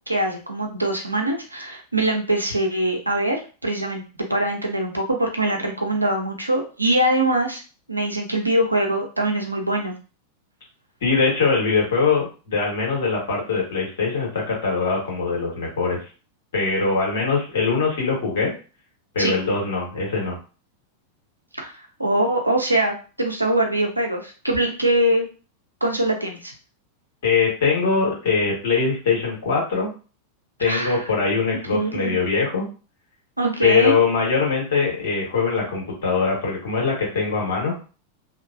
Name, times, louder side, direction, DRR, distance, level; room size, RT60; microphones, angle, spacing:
voice 1, 0.1-4.0 4.3-7.6 7.9-9.9 19.2-19.4 21.5-25.2 25.8-26.5 30.6-31.0 31.7-32.2 33.4-34.0, right 1 dB, 85° right, 2 dB, 0.6 m, -23 dB
voice 2, 11.0-16.0 16.5-18.5 19.1-20.4 27.2-29.9 30.6-32.6 33.6-37.7, left 4 dB, 60° left, -3 dB, 1.5 m, -22 dB
2.8 x 2.3 x 2.5 m, 0.35 s
figure-of-eight pair, 90°, 0 cm